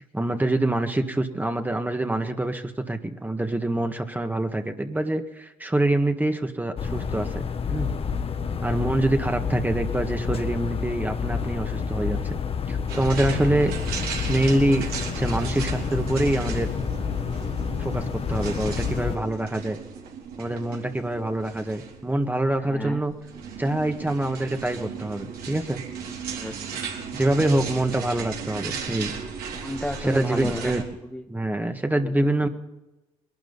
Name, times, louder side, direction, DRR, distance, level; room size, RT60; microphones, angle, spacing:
voice 1, 0.1-7.9 8.6-12.3 12.7-13.7 14.3-14.9 15.2-16.7 17.8-19.8 20.4-23.1 23.6-25.8 27.1-29.1 30.0-30.8 31.3-32.5, right 1 dB, 10° right, 5 dB, 1.7 m, -25 dB
sound 1, 6.8-19.2, left 6 dB, 40° left, 1.2 m, -29 dB
sound 2, 12.9-30.8, right 6 dB, 70° right, 3.2 m, -36 dB
voice 2, 22.6-23.0 26.1-26.8 29.5-30.7 31.1-31.2 32.0-32.1, left 1 dB, 5° left, 2 dB, 1.3 m, -32 dB
21.5 x 12.0 x 4.1 m, 1.0 s
supercardioid pair, 70°, 16 cm